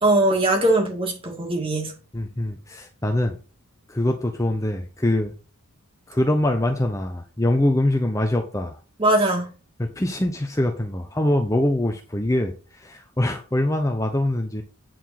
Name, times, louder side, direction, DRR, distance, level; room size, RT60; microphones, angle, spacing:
voice 1, 0.0-1.9 9.0-9.5, right 1 dB, 25° right, 1 dB, 2.2 m, -20 dB
voice 2, 2.1-3.4 3.9-5.3 6.1-8.8 9.8-14.6, left 1 dB, 15° left, 4 dB, 0.7 m, -23 dB
9.3 x 4.5 x 5.9 m, 0.35 s
head